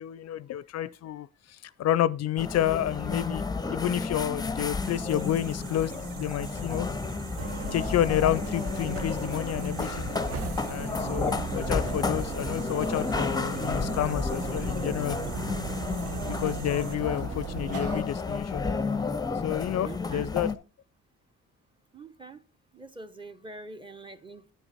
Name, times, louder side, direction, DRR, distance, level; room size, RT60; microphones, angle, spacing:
voice 1, 0.0-3.4 3.7-5.9 6.2-6.9 7.7-10.1 10.7-15.2 16.2-18.7 19.4-20.5, left 12 dB, 60° left, 0.4 m, -30 dB
sound 1, 2.4-20.6, left 4 dB, 15° left, 0.6 m, -32 dB
sound 2, 4.8-17.0, right 7 dB, 80° right, 1.0 m, -44 dB
sound 3, 7.4-18.0, right 6 dB, 50° right, 0.9 m, -37 dB
voice 2, 19.8-20.3 21.9-22.4 22.7-24.5, right 3 dB, 15° right, 0.8 m, -44 dB
9.2 x 7.1 x 4.1 m
cardioid pair, 90°, 30 cm